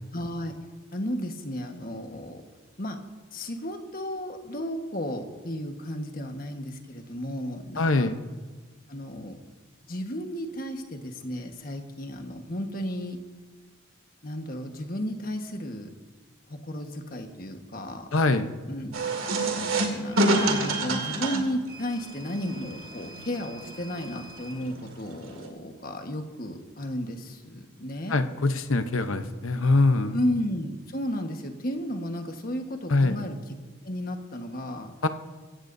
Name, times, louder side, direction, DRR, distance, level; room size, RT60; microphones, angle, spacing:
voice 1, 0.1-0.5 0.9-2.4 2.8-3.0 3.3-8.1 8.9-9.4 9.9-13.2 14.2-15.9 16.5-18.0 18.7-19.0 19.3-28.1 30.1-33.4 33.8-34.9, equal, 45° left, 4 dB, 1.4 m, -33 dB
voice 2, 7.8-8.2 18.1-18.5 28.1-30.2 32.9-33.2 35.0-35.1, left 2 dB, 80° left, 9 dB, 0.9 m, -23 dB
sound 1, 18.9-25.5, right 2 dB, 85° right, 2.3 m, -29 dB
25.0 x 15.5 x 2.7 m, 1.4 s
head